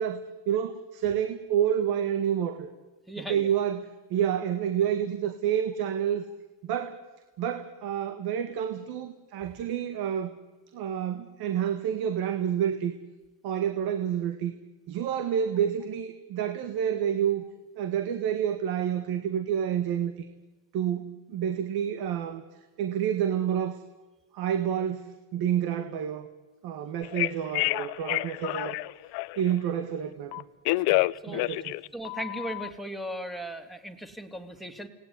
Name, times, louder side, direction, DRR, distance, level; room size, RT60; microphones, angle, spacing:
voice 1, 0.0-2.7 3.2-6.2 6.6-7.0 7.4-10.3 10.7-12.9 13.4-14.5 14.9-17.4 17.8-20.3 20.7-22.4 22.8-23.8 24.3-26.3 26.6-28.8 29.4-30.4 30.9-31.7, right 9 dB, 65° right, 8 dB, 2.0 m, -29 dB
voice 2, 3.1-3.5 31.2-31.6 31.9-34.9, equal, ahead, 4 dB, 2.7 m, -37 dB
Telephone, 27.0-29.5 30.3-32.7, left 21 dB, 75° left, 0.8 m, -28 dB
29.0 x 19.0 x 9.8 m, 1.2 s
cardioid pair, 110°, 39 cm